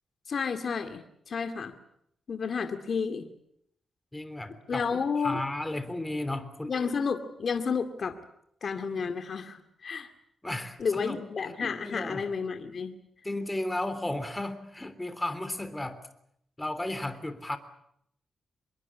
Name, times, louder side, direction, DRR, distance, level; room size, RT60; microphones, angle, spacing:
voice 1, 0.3-1.8 2.3-3.3 4.7-5.4 6.7-8.2 8.6-10.1 10.8-13.0, left 5 dB, 55° left, 7 dB, 2.3 m, -31 dB
voice 2, 4.1-4.9 5.2-6.7 10.4-11.2 11.6-12.2 13.2-16.0 16.6-17.6, left 1 dB, 10° left, 11 dB, 3.3 m, -34 dB
25.5 x 22.0 x 8.5 m, 0.74 s
cardioid pair, 100°, 0 cm